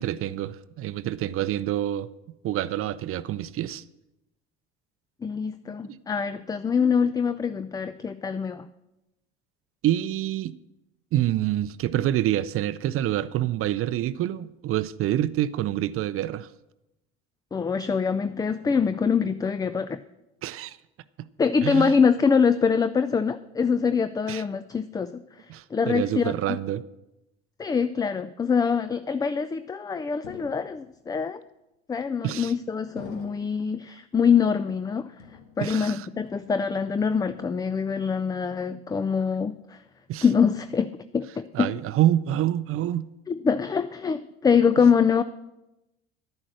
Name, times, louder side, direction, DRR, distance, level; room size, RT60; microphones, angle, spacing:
voice 1, 0.0-2.1 2.4-3.8 5.9-6.0 9.8-10.5 11.1-16.5 20.4-20.8 21.6-21.9 24.3-24.4 25.5-26.8 32.2-32.5 35.6-36.1 40.1-40.2 41.5-43.1, right 12 dB, 45° right, 0.6 m, -27 dB
voice 2, 5.2-8.7 17.5-20.0 21.4-25.5 25.7-26.3 27.6-31.4 31.9-35.1 35.6-39.8 40.2-41.7 43.3-45.2, left 6 dB, 10° left, 0.4 m, -24 dB
sound 1, 30.2-31.1 31.9-32.5 33.0-33.8 34.3-34.9 35.2-36.0 36.3-36.7 37.1-37.7, left 4 dB, 85° left, 1.9 m, -47 dB
10.5 x 9.8 x 6.3 m
hypercardioid pair, 75°, 33 cm